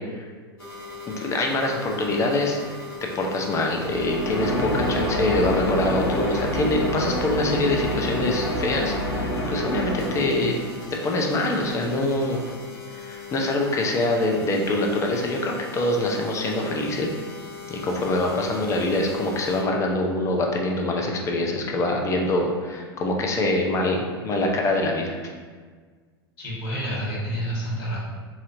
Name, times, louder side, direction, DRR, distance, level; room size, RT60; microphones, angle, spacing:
sound 1, 0.6-19.6, left 5 dB, 60° left, 1.1 m, -38 dB
voice 1, 1.1-2.6 3.1-10.6 11.0-12.4 12.9-17.1 17.7-25.2, left 2 dB, 20° left, 1 dB, 0.5 m, -24 dB
sound 2, 3.8-10.7, equal, 80° left, 0.6 m, -27 dB
voice 2, 26.4-28.0, equal, 45° left, -7 dB, 1.3 m, -29 dB
4.2 x 2.5 x 2.6 m, 1.5 s
figure-of-eight pair, 85°, 13 cm